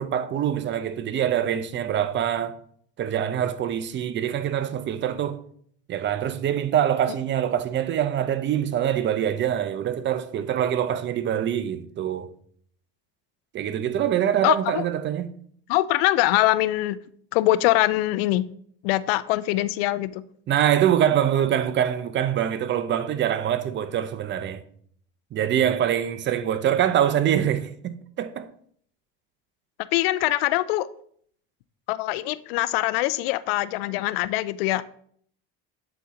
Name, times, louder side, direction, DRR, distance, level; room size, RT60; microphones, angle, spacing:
voice 1, 0.0-2.6 3.0-5.4 5.9-12.3 13.5-15.3 20.5-24.6 25.3-28.5, right 10 dB, 40° right, 0.6 m, -24 dB
voice 2, 14.4-14.8 15.7-17.0 17.3-18.5 18.8-20.2 29.9-30.9 31.9-34.8, left 16 dB, 80° left, 0.5 m, -23 dB
7.9 x 4.2 x 3.7 m
supercardioid pair, 100°, 29 cm